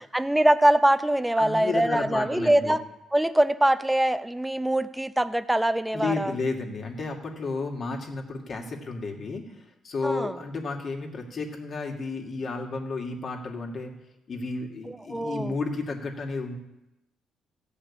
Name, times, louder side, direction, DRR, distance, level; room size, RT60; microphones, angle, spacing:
voice 1, 0.0-2.8 3.1-6.3 10.0-10.4 15.1-15.5, right 1 dB, 5° right, 12 dB, 0.6 m, -23 dB
voice 2, 1.4-2.7 5.9-13.9 14.3-16.6, left 3 dB, 50° left, 2 dB, 2.2 m, -32 dB
15.0 x 5.6 x 8.6 m, 0.93 s
cardioid pair, 90°, 0 cm